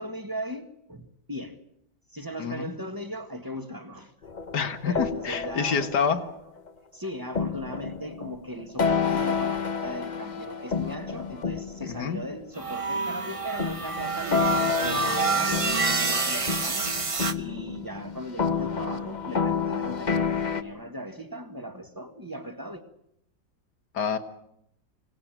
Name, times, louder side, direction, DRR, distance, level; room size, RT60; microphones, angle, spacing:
voice 1, 0.0-1.6 2.1-4.1 4.8-5.9 6.9-16.9 17.4-22.8, equal, 10° right, 1.6 m, -38 dB
voice 2, 2.4-2.7 4.5-6.2 11.8-12.2 23.9-24.2, left 6 dB, 65° left, 2.2 m, -27 dB
sound 1, 4.2-6.7 7.3-12.8 13.6-20.6, left 5 dB, 30° left, 0.9 m, -30 dB
sound 2, 12.6-17.3, right 4 dB, 30° right, 0.6 m, -27 dB
24.5 x 18.5 x 9.2 m
omnidirectional pair, 2.0 m